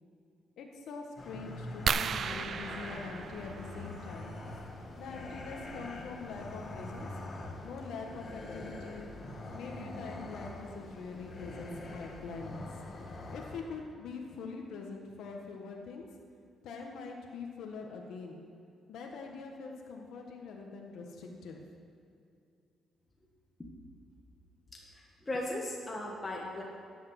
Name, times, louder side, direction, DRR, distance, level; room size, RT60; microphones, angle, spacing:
voice 1, 0.6-4.3 5.0-7.1 7.6-9.1 9.5-12.8 13.3-16.0 16.6-18.4 18.9-21.6, left 4 dB, 75° left, 1 dB, 1.5 m, -44 dB
sound 1, 1.2-13.6, left 2 dB, 45° left, 1.6 m, -44 dB
sound 2, 1.9-4.2 5.8-6.0 6.6-6.7 7.0-7.2, right 7 dB, 55° right, 0.4 m, -35 dB
voice 2, 24.9-26.6, left 1 dB, 20° left, -2 dB, 1.7 m, -37 dB
12.5 x 8.6 x 6.0 m, 2.6 s
cardioid pair, 90°, 0 cm